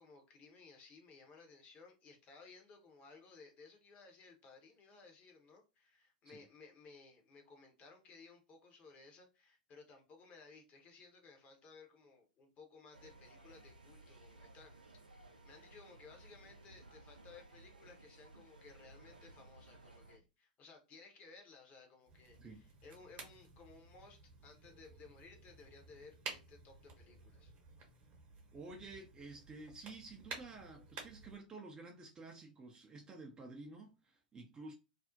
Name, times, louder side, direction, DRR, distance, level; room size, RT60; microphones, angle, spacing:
voice 1, 0.0-14.7 15.4-27.5, left 4 dB, 30° left, 0.7 m, -59 dB
sound 1, 12.9-20.2, right 2 dB, 80° right, 0.5 m, -59 dB
sound 2, 22.0-31.4, right 4 dB, 35° right, 0.9 m, -53 dB
voice 2, 28.5-34.7, right 3 dB, 15° right, 0.4 m, -51 dB
2.5 x 2.0 x 2.6 m
figure-of-eight pair, 95°, 5 cm